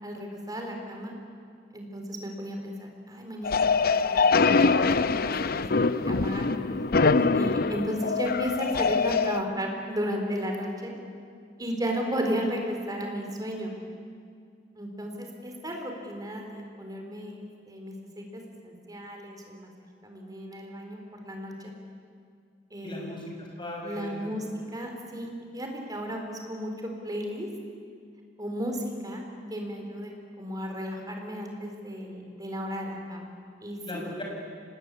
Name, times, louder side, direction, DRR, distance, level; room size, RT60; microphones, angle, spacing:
voice 1, 0.0-1.1 1.7-6.5 7.1-10.9 11.6-13.7 14.8-19.7 20.0-21.7 22.7-23.1 23.8-24.4 24.7-26.7 27.0-27.5 28.4-29.2 29.5-34.0, equal, 20° right, 2 dB, 4.0 m, -34 dB
sound 1, 3.4-9.4, left 4 dB, 55° left, 0.7 m, -24 dB
voice 2, 22.8-24.3 33.9-34.2, left 1 dB, 30° left, -1 dB, 6.4 m, -38 dB
26.5 x 20.0 x 8.4 m, 2.3 s
head